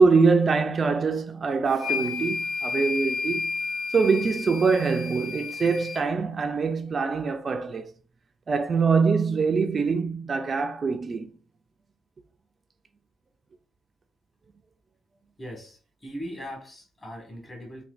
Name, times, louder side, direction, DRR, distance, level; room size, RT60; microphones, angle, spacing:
voice 1, 0.0-3.5 3.9-7.9 8.5-11.3, right 4 dB, 40° right, 0.3 m, -23 dB
sound 1, 1.7-6.0, left 5 dB, 55° left, 1.0 m, -31 dB
voice 2, 15.4-17.8, equal, 25° left, 1.5 m, -39 dB
4.1 x 2.2 x 2.5 m
cardioid pair, 90°, 0 cm